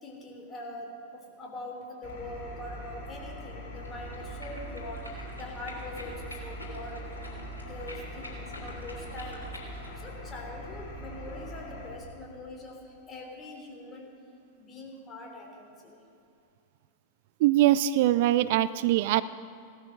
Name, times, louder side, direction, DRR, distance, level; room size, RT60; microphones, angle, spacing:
voice 1, 0.0-14.1 14.6-16.0, left 2 dB, 25° left, 1 dB, 3.2 m, -43 dB
Engine, 2.0-11.9, equal, 50° left, 3.6 m, -42 dB
sound 1, 3.8-10.0, left 1 dB, 80° left, 3.1 m, -47 dB
voice 2, 17.4-19.2, right 14 dB, 50° right, 16 dB, 0.3 m, -22 dB
16.5 x 13.0 x 6.5 m, 2.6 s
figure-of-eight pair, 90°, 0 cm